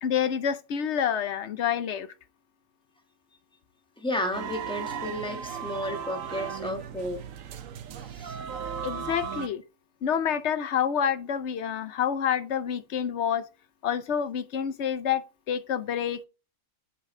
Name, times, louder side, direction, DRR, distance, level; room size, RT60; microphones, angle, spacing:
voice 1, 0.0-2.1 8.8-9.6 10.0-13.5 13.8-16.2, left 8 dB, 65° left, 1.0 m, -28 dB
voice 2, 4.0-7.2 8.0-8.4, left 1 dB, 5° left, 1.4 m, -33 dB
sound 1, 4.3-9.5, right 7 dB, 85° right, 1.2 m, -36 dB
8.6 x 5.7 x 3.7 m
omnidirectional pair, 1.3 m